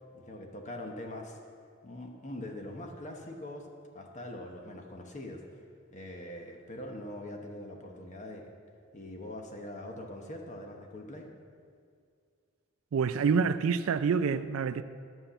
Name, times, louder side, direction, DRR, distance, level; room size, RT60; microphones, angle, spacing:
voice 1, 0.1-1.4 1.8-3.7 3.9-5.6 5.9-8.5 8.9-11.3, left 1 dB, 35° left, 1.0 m, -42 dB
voice 2, 12.9-14.8, right 5 dB, 75° right, 0.4 m, -27 dB
11.0 x 5.7 x 7.8 m
head